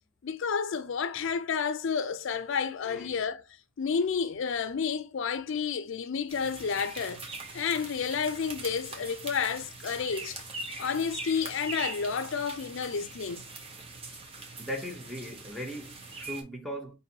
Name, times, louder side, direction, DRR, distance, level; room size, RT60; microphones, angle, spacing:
voice 1, 0.2-3.5 3.8-7.2 7.5-10.4 10.8-13.4, left 6 dB, 65° left, 0.4 m, -30 dB
sound 1, 6.3-16.4, right 3 dB, 30° right, 0.9 m, -42 dB
voice 2, 14.6-16.9, equal, ahead, 0.8 m, -38 dB
5.4 x 2.6 x 2.7 m
head